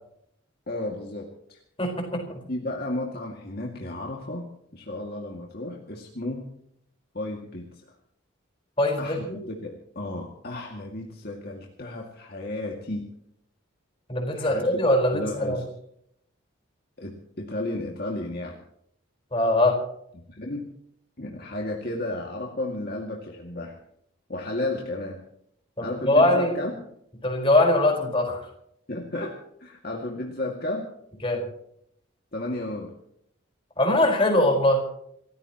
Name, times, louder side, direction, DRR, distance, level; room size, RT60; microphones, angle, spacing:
voice 1, 0.7-1.6 2.5-6.4 7.1-8.0 9.0-13.0 14.3-14.8 15.1-15.7 17.0-18.6 20.1-20.7 21.2-23.8 24.3-25.2 25.8-26.7 28.9-30.9 32.3-32.9, left 1 dB, 50° left, 0 dB, 2.2 m, -33 dB
voice 2, 1.8-2.4 8.8-9.3 14.1-15.6 19.3-19.8 25.8-26.5 27.2-28.4 31.2-31.4 33.8-34.8, left 1 dB, 25° left, 1 dB, 4.7 m, -22 dB
27.5 x 15.0 x 3.0 m, 0.70 s
head